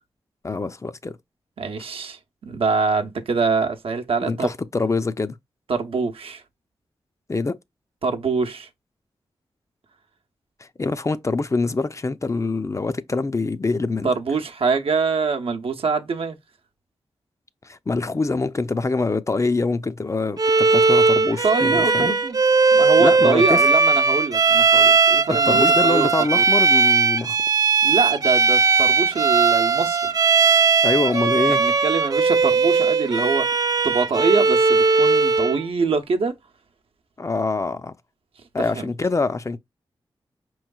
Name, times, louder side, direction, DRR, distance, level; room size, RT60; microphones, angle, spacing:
voice 1, 0.4-1.1 4.2-5.4 7.3-7.6 10.6-14.1 17.6-22.2 23.0-23.7 25.3-27.4 30.8-31.6 37.2-37.9 38.5-39.6, left 3 dB, 30° left, 0.5 m, -24 dB
voice 2, 1.6-4.5 5.7-6.4 8.0-8.7 14.0-16.4 21.4-22.4 22.7-26.1 26.3-26.4 27.8-30.1 31.5-36.3 38.7-38.9, right 4 dB, 75° right, 0.7 m, -24 dB
Bowed string instrument, 20.4-35.6, right 4 dB, 40° right, 0.5 m, -18 dB
5.2 x 3.1 x 2.3 m
cardioid pair, 50°, 10 cm